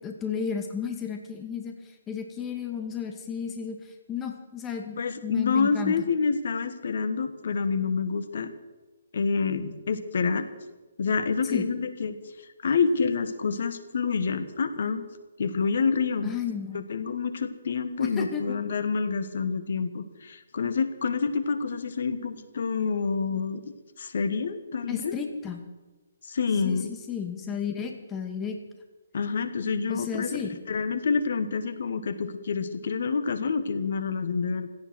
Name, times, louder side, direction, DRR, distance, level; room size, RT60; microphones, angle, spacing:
voice 1, 0.0-1.7 2.1-3.8 4.1-5.9 11.5-11.7 16.2-16.8 18.0-18.6 24.9-25.6 26.6-26.8 27.1-28.6 29.9-30.5, left 7 dB, 15° left, 4 dB, 2.1 m, -33 dB
voice 2, 5.0-8.5 9.1-10.5 11.0-15.0 15.4-16.3 16.7-23.6 24.0-25.2 26.2-26.9 29.1-34.7, left 5 dB, 60° left, 11 dB, 1.5 m, -28 dB
17.0 x 13.0 x 6.2 m, 1.2 s
figure-of-eight pair, 140°, 0 cm